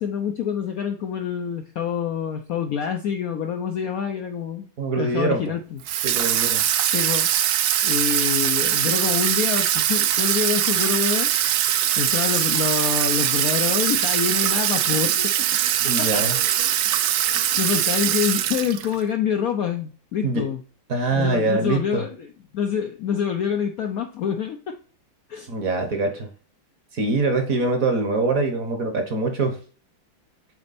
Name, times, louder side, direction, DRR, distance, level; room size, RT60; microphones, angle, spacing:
voice 1, 0.0-4.7 5.0-5.8 6.9-7.3 7.8-11.3 12.0-15.3 16.0-16.5 17.3-20.6 21.1-24.8 25.3-25.5, left 7 dB, 90° left, 6 dB, 0.7 m, -26 dB
voice 2, 4.8-5.4 6.0-6.6 15.8-16.4 20.2-20.5 20.9-22.0 25.5-26.3 26.9-29.6, right 3 dB, 50° right, 6 dB, 1.1 m, -23 dB
Water tap faucet / Sink (filling or washing), 5.9-19.0, right 11 dB, 75° right, 0.8 m, -22 dB
7.4 x 4.4 x 4.1 m, 0.41 s
omnidirectional pair, 2.3 m